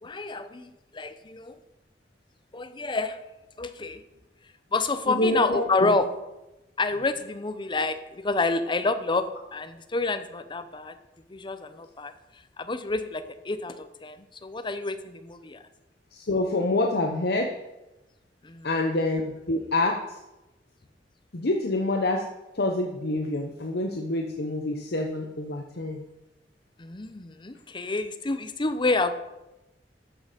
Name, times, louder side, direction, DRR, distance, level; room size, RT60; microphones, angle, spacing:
voice 1, 0.0-1.6 2.5-3.2 3.6-4.0 4.7-6.1 6.8-11.0 11.3-12.1 12.6-15.6 18.4-18.7 26.8-29.1, left 3 dB, 25° left, 10 dB, 0.7 m, -28 dB
voice 2, 5.1-5.9 16.1-17.6 18.6-20.2 21.3-22.3 22.5-26.0, left 2 dB, 60° left, 2 dB, 0.9 m, -27 dB
13.5 x 6.7 x 5.1 m, 0.98 s
head